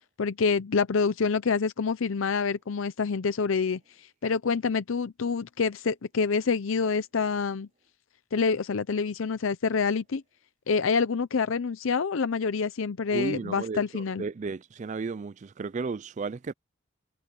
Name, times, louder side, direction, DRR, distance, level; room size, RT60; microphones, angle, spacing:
voice 1, 0.2-7.7 8.3-10.2 10.7-14.2, left 5 dB, 65° left, 0.5 m, -27 dB
voice 2, 13.1-16.5, right 4 dB, 35° right, 0.3 m, -34 dB
head